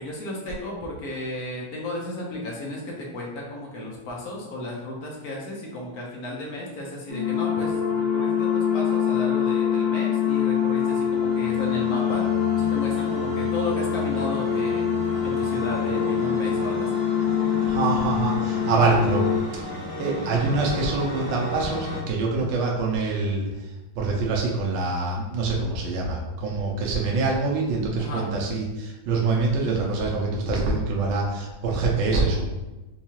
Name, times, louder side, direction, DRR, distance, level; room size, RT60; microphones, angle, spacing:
voice 1, 0.0-12.2 12.6-14.9 15.2-17.0 17.5-17.8 28.0-28.3, left 1 dB, 65° left, -2 dB, 0.9 m, -34 dB
sound 1, 7.1-19.4, left 8 dB, ahead, 0.7 m, -24 dB
sound 2, 10.4-22.0, equal, 35° left, 0.8 m, -36 dB
voice 2, 17.6-19.2 19.6-19.7 20.0-32.5, right 3 dB, 75° right, -2 dB, 1.3 m, -25 dB
4.5 x 2.3 x 2.8 m, 1.1 s
omnidirectional pair, 2.2 m